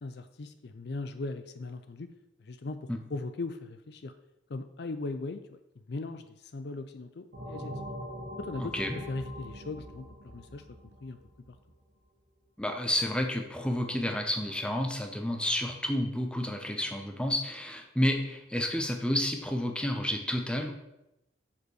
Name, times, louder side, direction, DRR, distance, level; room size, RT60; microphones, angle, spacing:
voice 1, 0.0-2.1 2.4-4.1 4.5-5.4 5.9-7.7 8.4-8.7 9.1-10.6 11.0-11.2 11.5-11.6, left 3 dB, 60° left, 10 dB, 0.5 m, -38 dB
sound 1, 7.3-11.7, equal, 80° right, 1.8 m, -42 dB
voice 2, 8.6-9.0 12.6-20.7, left 1 dB, 5° left, 3 dB, 0.9 m, -30 dB
6.9 x 5.2 x 6.3 m, 0.89 s
head